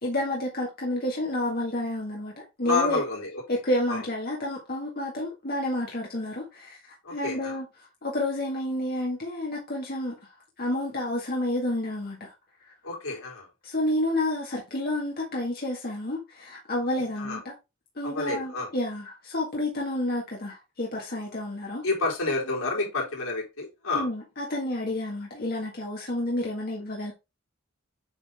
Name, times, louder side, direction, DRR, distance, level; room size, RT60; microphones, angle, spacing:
voice 1, 0.0-3.0 3.5-7.6 8.0-10.2 10.6-12.3 12.6-12.7 13.6-17.5 17.9-21.8 23.9-27.1, left 1 dB, 45° left, 1.7 m, -30 dB
voice 2, 2.6-3.4 3.9-4.0 7.0-7.6 12.8-13.5 17.2-17.4 18.0-18.7 21.8-24.1, left 3 dB, 80° left, 3.9 m, -29 dB
8.1 x 4.0 x 3.5 m
head